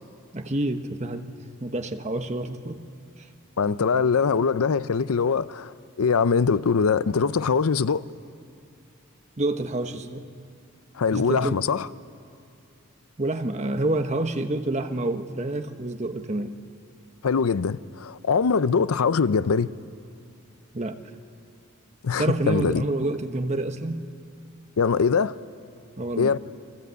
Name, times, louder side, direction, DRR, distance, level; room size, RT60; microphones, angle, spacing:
voice 1, 0.3-1.3 1.6-2.8 3.7-3.8 9.4-10.2 11.1-11.6 13.2-16.6 20.7-21.0 22.2-24.0 26.0-26.3, right 2 dB, 30° right, 1.0 m, -28 dB
voice 2, 3.6-8.0 10.9-11.9 17.2-19.7 22.0-22.8 24.8-25.3 26.2-26.4, left 5 dB, 85° left, 0.6 m, -22 dB
29.0 x 22.0 x 8.2 m
head